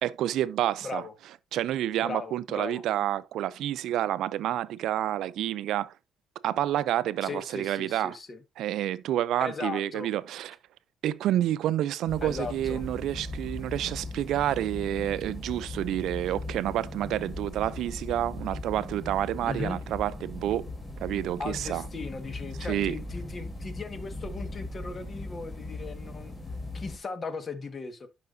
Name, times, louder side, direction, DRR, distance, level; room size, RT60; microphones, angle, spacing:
voice 1, 0.0-1.0 1.5-5.9 6.4-8.2 8.6-10.6 11.0-20.7 21.0-21.8 22.7-22.9, right 12 dB, 80° right, 0.4 m, -29 dB
voice 2, 2.0-2.8 7.2-8.4 9.4-10.1 12.2-12.8 19.4-19.8 21.4-26.3 26.7-28.1, left 4 dB, 40° left, 1.6 m, -37 dB
sound 1, 12.1-27.0, left 2 dB, 20° left, 3.3 m, -39 dB
10.5 x 5.8 x 2.7 m
cardioid pair, 90°, 0 cm